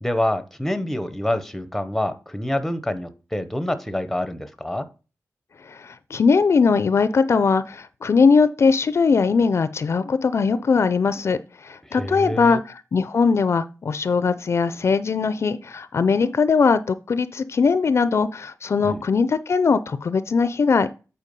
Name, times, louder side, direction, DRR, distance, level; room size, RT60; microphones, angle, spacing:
voice 1, 0.0-4.9 11.8-12.6 18.8-19.0, left 1 dB, 5° left, 11 dB, 0.7 m, -26 dB
voice 2, 5.7-11.4 11.6-20.9, left 5 dB, 50° left, 14 dB, 0.4 m, -20 dB
8.2 x 4.5 x 5.2 m, 0.33 s
wide cardioid pair, 175°, 6 cm